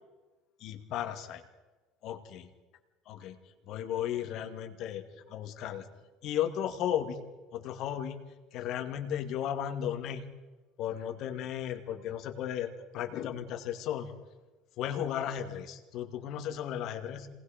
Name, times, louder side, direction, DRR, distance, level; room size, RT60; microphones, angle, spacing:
voice 1, 0.6-1.4 2.0-2.5 3.1-3.4 3.7-5.8 6.2-7.2 7.5-8.2 8.5-10.2 10.8-14.1 14.8-17.3, left 10 dB, 60° left, 5 dB, 2.2 m, -35 dB
27.0 x 19.5 x 5.2 m, 1.2 s
supercardioid pair, 95°, 0 cm